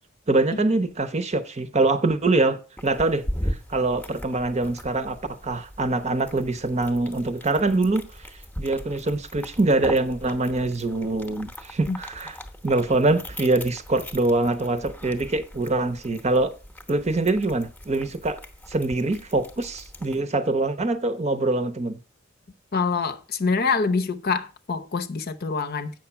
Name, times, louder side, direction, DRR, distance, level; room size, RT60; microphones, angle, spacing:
voice 1, 0.3-8.1 8.6-12.3 12.6-16.5 16.9-18.4 18.7-22.0, right 2 dB, 35° right, 0.8 m, -24 dB
sound 1, 2.8-20.2, equal, 10° left, 0.9 m, -39 dB
voice 2, 22.7-25.9, left 4 dB, 50° left, 0.8 m, -25 dB
8.0 x 6.0 x 5.6 m
head